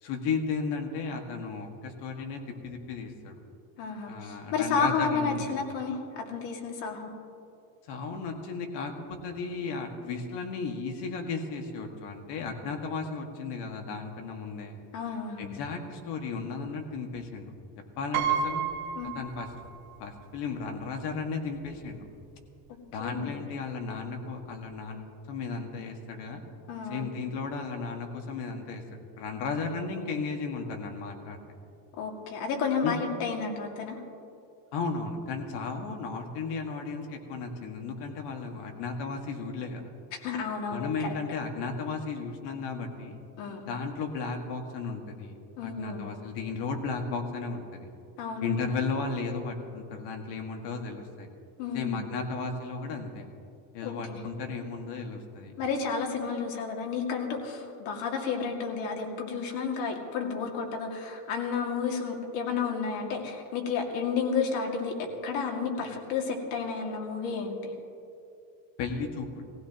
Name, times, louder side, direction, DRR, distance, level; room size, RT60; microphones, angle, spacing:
voice 1, 0.0-3.3 4.1-5.5 7.9-14.8 15.4-17.5 18.0-18.7 19.2-19.5 20.0-22.0 22.9-26.4 26.9-28.8 29.2-31.4 32.8-32.9 34.7-39.9 40.7-43.2 43.7-45.3 45.6-47.9 48.4-51.3 51.7-53.3 53.7-55.5 68.8-69.4, left 4 dB, 70° left, 3 dB, 1.9 m, -34 dB
voice 2, 3.8-7.1 14.9-15.6 18.9-19.1 23.0-23.3 26.7-27.1 31.9-34.0 40.2-41.1 43.4-43.7 45.6-46.1 48.2-48.6 51.6-52.1 53.8-54.2 55.6-67.7, left 5 dB, 85° left, 1 dB, 2.3 m, -31 dB
Piano, 18.1-20.0 20.3-20.4 21.5-21.6 21.9-22.2, right 7 dB, 55° right, 1.7 m, -31 dB
20.0 x 15.5 x 3.0 m, 2.6 s
cardioid pair, 145°, 43 cm